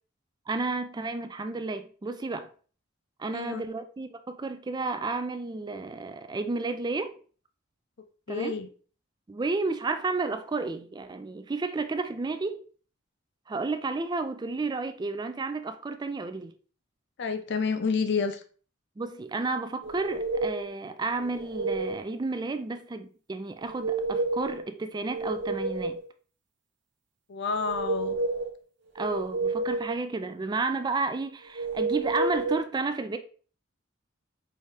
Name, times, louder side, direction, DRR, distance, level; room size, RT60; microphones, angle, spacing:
voice 1, 0.5-2.5 3.2-7.2 8.3-8.5 9.3-12.6 13.5-16.6 19.0-26.0 28.9-33.2, right 3 dB, 20° right, 0.3 m, -32 dB
voice 2, 8.3-8.7 17.2-18.4 27.3-28.2, left 5 dB, 55° left, 0.5 m, -29 dB
sound 1, 19.8-20.7 21.2-22.0 23.6-24.6 25.0-26.1 27.5-28.5 29.0-30.0 31.6-32.6, right 3 dB, 60° right, 0.8 m, -30 dB
4.8 x 2.8 x 3.3 m
head